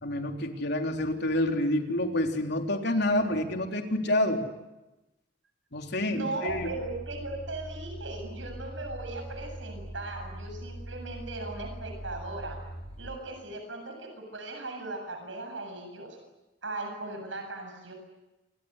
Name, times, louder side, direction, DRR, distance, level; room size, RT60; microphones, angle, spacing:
voice 1, 0.0-4.4 5.7-6.7, left 1 dB, 65° left, 3 dB, 3.7 m, -28 dB
voice 2, 6.1-12.6 13.0-16.2 16.6-17.9, right 2 dB, 90° right, 4 dB, 7.6 m, -38 dB
sound 1, 6.5-13.2, right 1 dB, 35° left, 3.9 m, -41 dB
28.0 x 24.5 x 8.2 m, 1.0 s
head